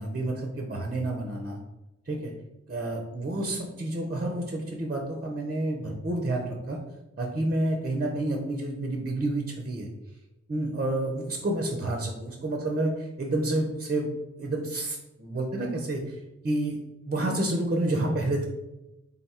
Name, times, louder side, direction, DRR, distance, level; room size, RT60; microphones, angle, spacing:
voice 1, 0.0-1.6 2.1-2.3 2.7-6.8 7.2-9.9 10.5-14.1 14.4-16.8 17.1-18.5, right 1 dB, 30° right, 1 dB, 0.7 m, -29 dB
3.7 x 2.3 x 4.2 m, 0.97 s
cardioid pair, 55°, 29 cm